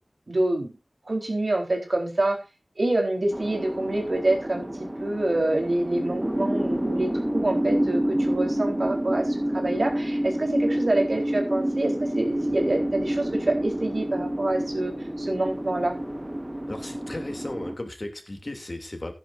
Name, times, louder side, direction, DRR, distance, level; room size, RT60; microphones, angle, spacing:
voice 1, 0.3-0.7 1.1-2.4 2.8-16.0, right 2 dB, 70° right, 2 dB, 4.1 m, -26 dB
sound 1, 3.3-17.8, right 1 dB, 20° right, 1.5 m, -28 dB
voice 2, 16.7-19.1, left 1 dB, 50° left, 5 dB, 2.8 m, -35 dB
15.5 x 10.5 x 2.6 m, 0.28 s
wide cardioid pair, 50°, 0 cm